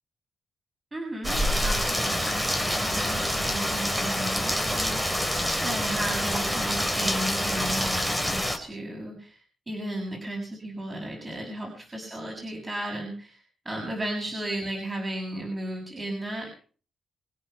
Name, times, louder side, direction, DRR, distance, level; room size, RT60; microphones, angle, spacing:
voice 1, 0.9-13.4 13.6-16.5, right 1 dB, 20° right, -1 dB, 6.8 m, -35 dB
Rain, 1.2-8.6, equal, 5° right, 4.0 m, -27 dB
25.5 x 9.5 x 5.7 m, 0.43 s
cardioid pair, 115°, 0 cm